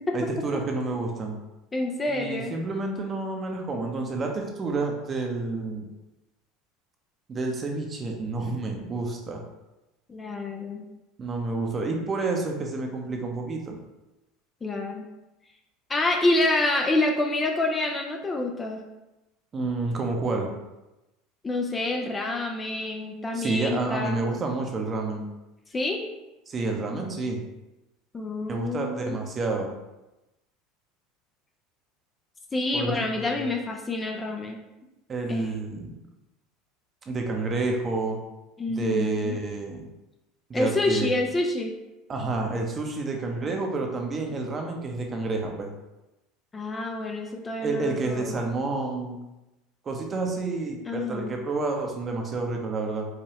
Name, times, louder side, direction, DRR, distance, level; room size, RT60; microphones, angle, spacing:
voice 1, 0.1-1.4 2.1-5.9 7.3-9.4 11.2-13.8 19.5-20.5 23.3-25.3 26.5-27.4 28.5-29.7 32.7-33.5 35.1-36.0 37.1-38.2 38.7-39.9 40.5-41.1 42.1-45.7 47.6-49.2 49.8-53.1, right 3 dB, 30° right, 2 dB, 0.7 m, -29 dB
voice 2, 1.7-2.5 10.1-10.8 14.6-15.1 15.9-18.8 21.4-24.3 25.7-26.0 28.1-29.2 32.5-34.6 35.3-35.5 38.6-39.4 40.5-41.7 46.5-48.4 50.9-51.3, left 2 dB, 20° left, 2 dB, 0.5 m, -27 dB
4.9 x 2.2 x 2.9 m, 0.99 s
hypercardioid pair, 90°, 0 cm